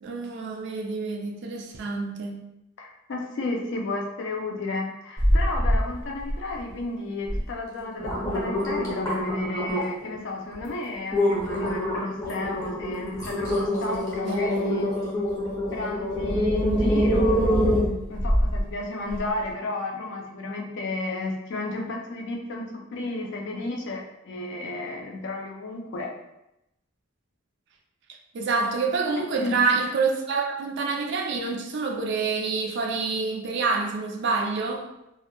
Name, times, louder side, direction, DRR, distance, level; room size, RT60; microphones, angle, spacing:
voice 1, 0.0-2.4 13.9-14.9 28.3-34.9, right 4 dB, 55° right, 0.3 m, -27 dB
voice 2, 2.8-14.9 15.7-17.8 18.1-26.1 29.2-29.6, left 2 dB, 60° left, 0.4 m, -32 dB
sound 1, 5.2-5.8 6.2-6.7 7.3-7.4 7.8-10.0 10.5-10.7 11.1-18.6 19.1-19.2, equal, 20° left, 0.6 m, -25 dB
2.1 x 2.0 x 2.8 m
head